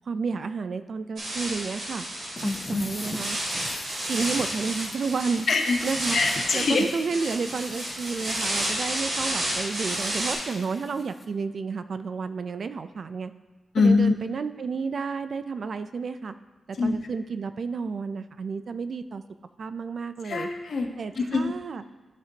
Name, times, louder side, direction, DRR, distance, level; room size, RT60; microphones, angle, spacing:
voice 1, 0.1-2.0 2.7-3.4 4.1-5.5 5.8-6.2 6.5-13.3 13.8-16.3 16.7-19.2 19.6-20.5 21.0-21.8, right 5 dB, 55° right, 11 dB, 0.3 m, -31 dB
sound 1, 1.2-10.3, right 1 dB, 70° right, 2.6 m, -31 dB
voice 2, 2.4-2.8 5.5-5.8 6.1-6.8 13.7-14.1 16.8-16.9 20.2-20.9 21.2-21.5, left 4 dB, 60° left, 4 dB, 0.8 m, -23 dB
sound 2, 2.4-11.3, left 3 dB, 30° left, 0.6 m, -43 dB
13.0 x 5.1 x 2.8 m, 1.2 s
wide cardioid pair, 140°, 0 cm